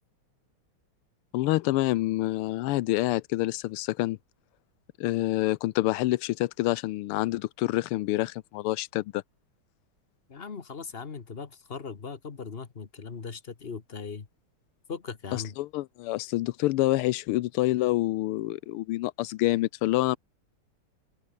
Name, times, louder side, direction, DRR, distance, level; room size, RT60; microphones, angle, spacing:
voice 1, 1.3-4.2 5.0-9.2 15.6-20.2, left 17 dB, 90° left, 1.6 m, -27 dB
voice 2, 10.3-14.3 14.9-15.6, left 5 dB, 30° left, 1.3 m, -39 dB
open air
omnidirectional pair, 2.4 m